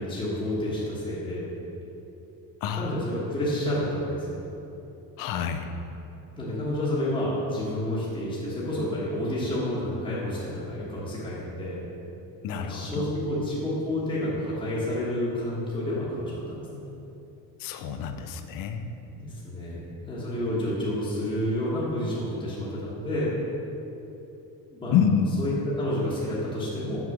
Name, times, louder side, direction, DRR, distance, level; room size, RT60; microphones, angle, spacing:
voice 1, 0.0-1.5 2.7-4.4 6.4-11.8 12.6-16.8 19.1-23.3 24.7-25.0 25.4-27.1, left 1 dB, 10° left, -8 dB, 1.1 m, -30 dB
voice 2, 2.6-3.0 5.2-5.7 12.4-13.1 17.6-19.0 24.9-25.4, left 7 dB, 55° left, 8 dB, 0.6 m, -27 dB
6.3 x 4.9 x 5.9 m, 2.9 s
cardioid pair, 170°, 41 cm